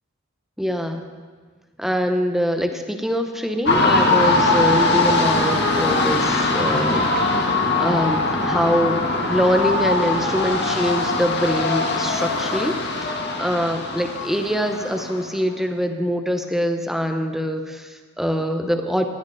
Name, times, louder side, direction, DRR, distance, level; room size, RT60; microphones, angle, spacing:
voice 1, 0.6-1.1 1.8-9.0 9.3-19.1, equal, ahead, 5 dB, 1.1 m, -24 dB
sound 1, 3.7-15.4, left 3 dB, 50° left, 2.0 m, -21 dB
20.0 x 16.5 x 4.3 m, 1.5 s
head